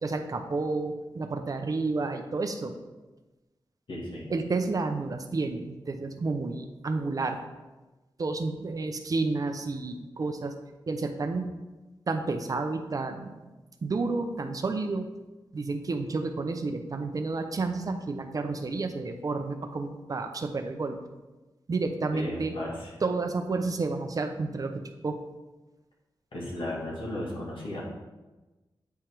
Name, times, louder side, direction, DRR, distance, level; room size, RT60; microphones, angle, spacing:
voice 1, 0.0-2.7 4.3-7.4 8.2-10.5 10.9-11.5 12.1-13.5 13.8-15.1 15.5-21.0 21.7-22.5 23.0-25.2, right 3 dB, 45° right, 6 dB, 0.6 m, -30 dB
voice 2, 3.9-4.3 22.1-22.9 26.3-27.8, left 1 dB, 75° left, -4 dB, 2.0 m, -35 dB
8.7 x 3.5 x 4.5 m, 1.1 s
wide cardioid pair, 120°, 9 cm